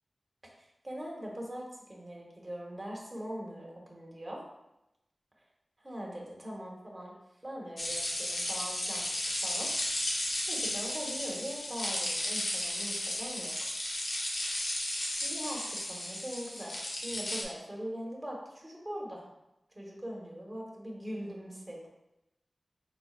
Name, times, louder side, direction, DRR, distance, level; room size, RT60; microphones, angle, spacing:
voice 1, 0.6-4.4 5.4-5.5 5.8-7.2 7.4-9.1 9.4-9.7 10.5-13.7 15.2-19.3 19.7-21.9, equal, 20° right, -3 dB, 1.3 m, -41 dB
sound 1, 7.8-17.4, left 1 dB, 60° left, 0.9 m, -34 dB
5.4 x 3.8 x 2.5 m, 0.90 s
wide cardioid pair, 80°, 0 cm